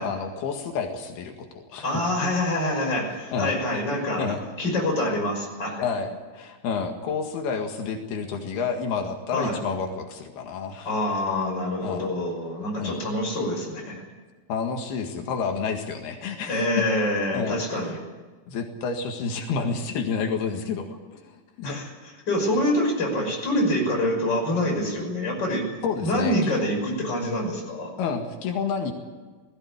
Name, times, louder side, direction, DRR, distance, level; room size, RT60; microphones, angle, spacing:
voice 1, 0.0-1.3 1.7-1.9 2.2-2.3 3.3-3.5 4.2-4.4 5.8-6.1 6.3-10.9 11.8-12.1 12.8-13.0 14.5-16.9 17.3-18.0 18.5-21.8 25.8-26.6 28.0-28.9, left 5 dB, 85° left, 3 dB, 3.9 m, -29 dB
voice 2, 1.8-4.3 4.6-5.8 9.3-9.6 10.8-14.0 16.5-18.0 21.6-21.9 22.3-25.7 26.0-27.9, left 1 dB, 25° left, 1 dB, 6.4 m, -26 dB
19.0 x 16.5 x 9.8 m, 1.3 s
omnidirectional pair, 4.4 m